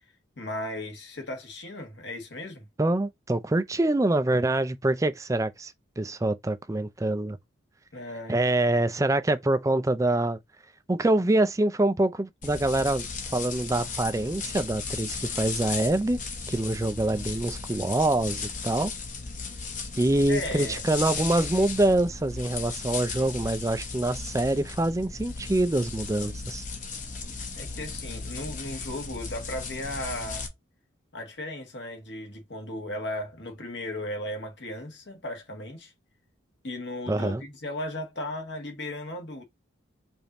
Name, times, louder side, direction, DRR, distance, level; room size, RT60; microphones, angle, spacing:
voice 1, 0.4-2.7 7.9-8.8 20.3-20.8 27.6-30.5 31.1-35.9 36.6-39.4, left 1 dB, 60° left, 1.5 m, -36 dB
voice 2, 2.8-7.4 8.3-10.4 10.9-13.1 13.3-16.2 16.5-18.9 20.0-26.6 37.1-37.4, right 2 dB, 15° right, 0.4 m, -25 dB
sound 1, 12.4-30.5, left 4 dB, 40° left, 1.0 m, -36 dB
5.1 x 2.6 x 3.0 m
head